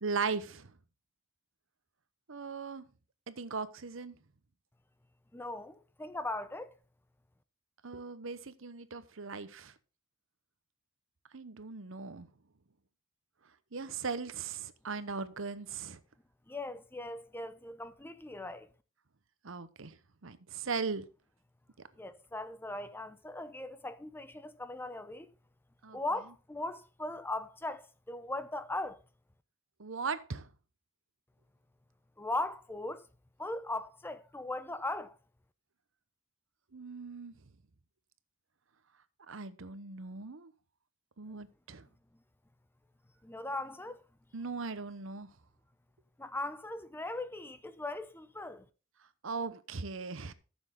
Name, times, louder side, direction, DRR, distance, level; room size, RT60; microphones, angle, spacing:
voice 1, 0.0-0.7 2.3-2.8 3.3-4.1 7.8-9.7 11.3-12.3 13.7-16.0 19.4-20.0 20.2-21.1 25.8-26.0 29.8-30.5 36.7-37.3 39.3-40.5 41.2-41.9 44.3-45.3 49.2-50.3, right 4 dB, 70° right, 0.9 m, -38 dB
voice 2, 5.3-6.7 16.5-18.7 22.0-25.3 25.9-29.0 32.2-33.0 33.4-35.2 43.2-44.0 46.2-48.7, left 2 dB, 10° left, 0.6 m, -39 dB
14.0 x 7.2 x 3.8 m
head